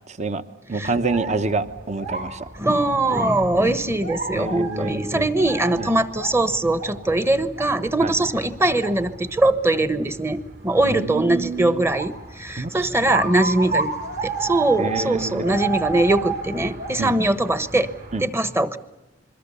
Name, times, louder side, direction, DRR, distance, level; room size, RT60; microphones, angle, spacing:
voice 1, 0.1-0.4 0.7-2.5 4.3-5.3 5.8-5.9 8.0-8.2 10.8-11.8 12.6-13.3 14.8-15.7 17.0-17.2 18.1-18.2, right 3 dB, 35° right, 11 dB, 1.1 m, -27 dB
sound 1, 0.8-18.2, right 4 dB, 55° right, 4.5 m, -32 dB
voice 2, 2.6-13.9 14.2-17.9 18.2-18.8, right 2 dB, 15° right, 12 dB, 1.1 m, -21 dB
27.5 x 22.5 x 6.9 m, 1.0 s
head